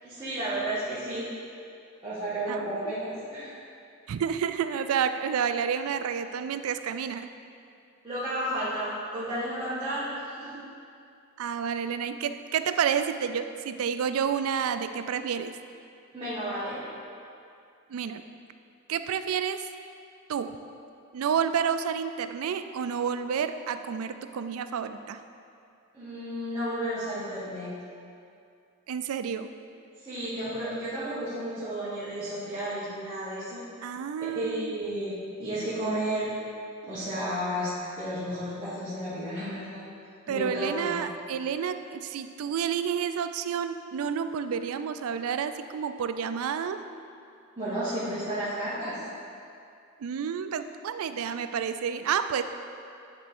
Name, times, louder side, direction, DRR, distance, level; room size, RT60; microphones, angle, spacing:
voice 1, 0.0-1.3 2.0-3.5 8.0-10.6 16.1-16.8 25.9-27.7 30.0-33.6 34.3-36.3 36.8-39.8 40.3-41.0 47.6-49.0, right 1 dB, 20° right, -14 dB, 1.7 m, -32 dB
voice 2, 2.5-2.9 4.1-7.3 11.4-15.5 17.9-18.2 18.9-19.7 20.3-20.6 21.1-25.2 28.9-29.5 33.8-34.8 40.3-46.8 50.0-52.4, right 7 dB, 80° right, 10 dB, 0.3 m, -30 dB
10.5 x 3.5 x 4.3 m, 2.5 s
head